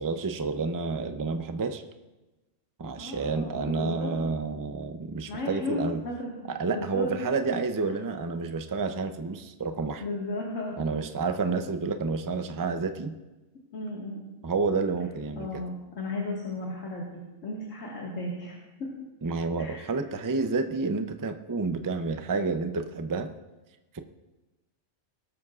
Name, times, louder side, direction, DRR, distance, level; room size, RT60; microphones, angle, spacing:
voice 1, 0.0-1.8 2.8-6.0 6.5-10.0 10.8-13.1 14.4-15.5 19.2-23.3 23.9-24.0, right 4 dB, 25° right, 7 dB, 0.4 m, -29 dB
voice 2, 3.0-4.1 5.3-6.3 6.7-7.1 7.8-8.0 10.0-10.8 13.7-14.3 15.4-18.9 19.6-19.9, left 2 dB, 75° left, -3 dB, 2.2 m, -35 dB
20.5 x 12.5 x 2.5 m, 1.1 s
omnidirectional pair, 1.3 m